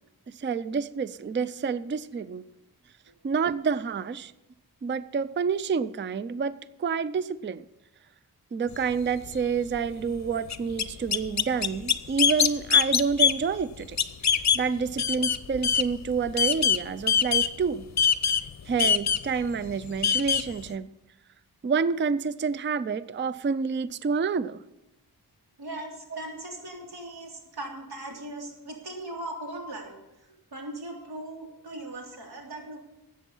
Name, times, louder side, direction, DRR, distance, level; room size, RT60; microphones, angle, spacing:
voice 1, 0.3-2.4 3.2-4.3 4.8-6.5 6.8-7.6 8.5-14.0 14.3-17.8 18.7-20.9 21.6-24.6 26.1-26.2 31.7-31.8, right 5 dB, 30° right, 16 dB, 0.4 m, -28 dB
sound 1, 8.7-8.8 9.2-9.3 9.8-9.9 10.5-14.7 15.0-16.8 17.1-17.7 18.0-20.5, left 7 dB, 45° left, 0.7 m, -23 dB
voice 2, 25.6-32.8, right 1 dB, 75° right, 0 dB, 3.4 m, -39 dB
13.5 x 8.6 x 5.4 m, 0.99 s
wide cardioid pair, 110°, 38 cm